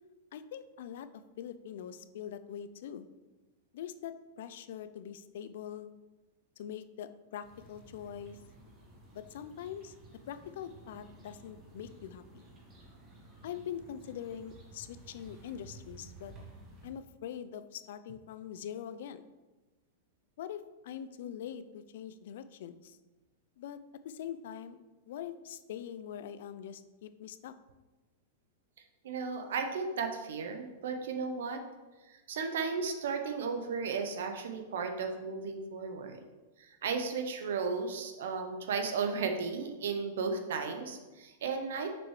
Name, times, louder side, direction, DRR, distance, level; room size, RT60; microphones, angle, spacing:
voice 1, 0.3-1.1 1.4-3.1 3.7-5.9 6.6-8.4 9.1-9.9 10.3-12.4 13.4-16.3 16.8-19.2 20.4-23.0 23.6-23.8 24.0-24.8 25.1-27.5, left 9 dB, 60° left, 13 dB, 0.4 m, -43 dB
sound 1, 7.4-16.9, right 2 dB, 20° right, 1.2 m, -54 dB
voice 2, 29.0-31.6 32.1-36.2 36.6-41.9, right 5 dB, 75° right, 5 dB, 0.8 m, -35 dB
6.2 x 6.0 x 3.1 m, 1.2 s
supercardioid pair, 170°, 0 cm